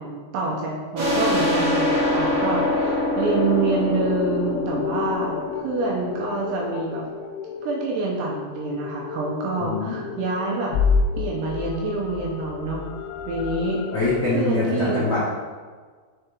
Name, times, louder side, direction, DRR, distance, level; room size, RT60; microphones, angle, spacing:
voice 1, 0.0-7.0 7.6-10.7 11.2-12.8 13.3-13.8 14.3-15.2, right 3 dB, 75° right, -3 dB, 2.7 m, -27 dB
sound 1, 0.9-6.3, left 1 dB, 55° right, 1.3 m, -24 dB
sound 2, 1.3-14.3, left 5 dB, 85° left, 2.8 m, -30 dB
voice 2, 9.6-10.1 13.9-15.2, left 3 dB, 65° left, -10 dB, 1.4 m, -24 dB
6.9 x 5.2 x 4.4 m, 1.5 s
omnidirectional pair, 5.5 m